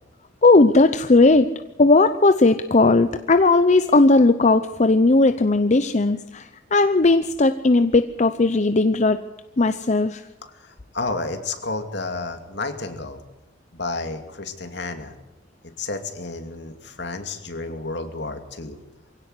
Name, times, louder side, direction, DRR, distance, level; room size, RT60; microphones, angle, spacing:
voice 1, 0.4-1.5 1.8-9.2 9.6-10.2, left 3 dB, 40° left, 10 dB, 0.7 m, -17 dB
voice 2, 10.6-13.2 13.7-15.1 15.8-18.8, left 3 dB, 65° left, 6 dB, 2.6 m, -31 dB
23.0 x 17.0 x 8.1 m, 0.96 s
head